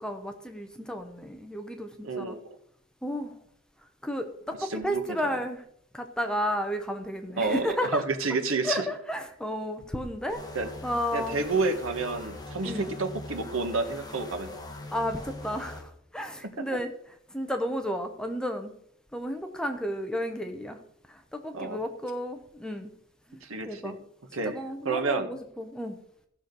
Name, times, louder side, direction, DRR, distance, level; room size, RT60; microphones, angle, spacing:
voice 1, 0.0-2.4 3.0-3.3 4.0-5.6 5.9-8.0 8.6-10.4 10.8-11.4 12.6-12.8 14.9-16.9 17.3-18.7 19.1-20.8 21.1-22.9 23.3-24.0 24.4-26.0, equal, 5° left, 6 dB, 0.9 m, -32 dB
voice 2, 2.0-2.4 4.6-5.3 7.4-8.9 10.5-10.7 11.1-14.5 16.4-16.6 21.5-21.8 23.4-24.0 24.3-25.3, right 3 dB, 90° right, 7 dB, 1.4 m, -30 dB
sound 1, 10.3-15.8, left 2 dB, 20° left, 1.6 m, -41 dB
15.0 x 6.4 x 5.3 m, 0.71 s
head